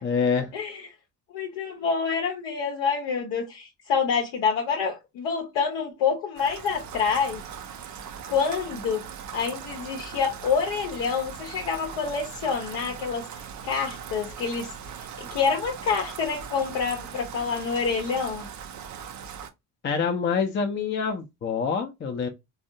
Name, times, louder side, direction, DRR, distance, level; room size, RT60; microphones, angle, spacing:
voice 1, 0.0-0.5 19.8-22.3, left 5 dB, 25° left, 0.5 m, -26 dB
voice 2, 1.3-7.4 8.3-9.1 9.3-13.3 13.6-14.7 15.2-18.4, left 6 dB, 60° left, 0.7 m, -27 dB
Rain, 6.4-19.5, right 7 dB, 40° right, 0.5 m, -40 dB
3.4 x 2.0 x 2.5 m
figure-of-eight pair, 45°, 48 cm